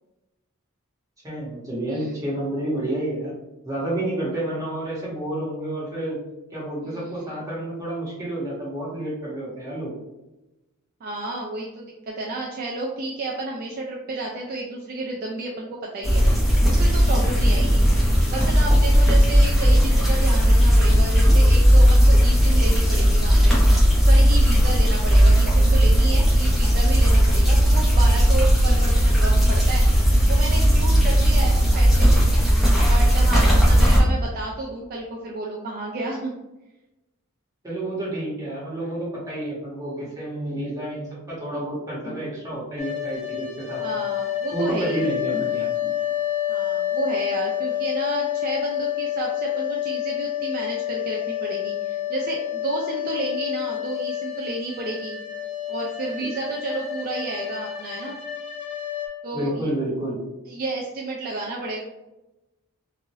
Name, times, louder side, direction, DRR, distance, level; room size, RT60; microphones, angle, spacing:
voice 1, 1.2-3.3 3.6-6.2 6.5-9.9 37.6-44.0 44.5-45.9 56.2-56.3 59.3-60.2, right 1 dB, 15° right, -7 dB, 1.2 m, -29 dB
voice 2, 6.9-7.2 11.0-17.9 18.3-23.6 24.1-32.2 32.8-36.3 43.8-45.1 46.5-55.2 55.7-58.2 59.2-59.7 60.5-61.8, right 2 dB, 45° right, -2 dB, 0.4 m, -31 dB
sound 1, 16.0-34.0, equal, ahead, 0.8 m, -16 dB
sound 2, 42.8-59.1, left 11 dB, 30° left, 0.4 m, -29 dB
3.0 x 2.5 x 2.7 m, 0.99 s
head